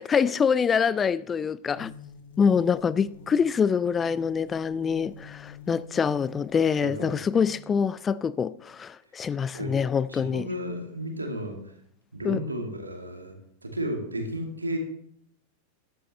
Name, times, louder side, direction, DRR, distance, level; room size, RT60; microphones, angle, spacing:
voice 1, 0.0-1.9 2.4-10.5 12.2-12.4, left 6 dB, 20° left, 0.3 m, -25 dB
sound 1, 1.7-7.6, left 4 dB, 60° left, 1.8 m, -47 dB
voice 2, 6.8-7.2 9.5-9.8 10.1-11.6 12.1-13.3 13.6-14.8, right 1 dB, 80° right, 2.3 m, -33 dB
13.5 x 11.5 x 3.2 m
figure-of-eight pair, 90°, 0 cm